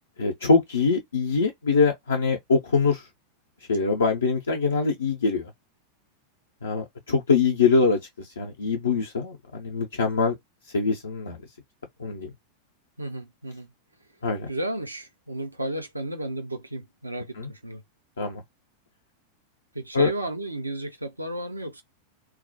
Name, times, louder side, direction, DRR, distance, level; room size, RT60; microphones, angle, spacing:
voice 1, 0.2-3.1 3.7-5.5 6.6-10.3 10.7-11.4 12.0-12.3 14.2-14.5 17.4-17.5 18.2-18.4 19.9-20.1, left 4 dB, 70° left, 0.5 m, -23 dB
voice 2, 13.0-13.7 14.5-17.8 19.7-21.8, right 1 dB, 85° right, 0.5 m, -33 dB
2.2 x 2.1 x 2.6 m
figure-of-eight pair, 90°, 0 cm